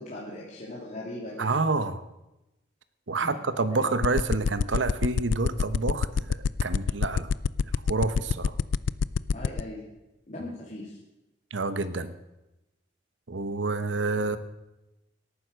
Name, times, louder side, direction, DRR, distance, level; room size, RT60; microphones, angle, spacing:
voice 1, 0.0-1.8 3.2-3.3 3.7-3.9 9.3-9.9 10.3-11.0, left 1 dB, 40° left, -5 dB, 2.6 m, -39 dB
voice 2, 1.4-2.0 3.1-7.3 7.9-8.5 11.5-12.2 13.3-14.4, right 3 dB, 85° right, 12 dB, 0.9 m, -28 dB
sound 1, 4.0-9.6, left 5 dB, 80° left, 0.4 m, -24 dB
17.0 x 9.3 x 6.3 m, 0.96 s
head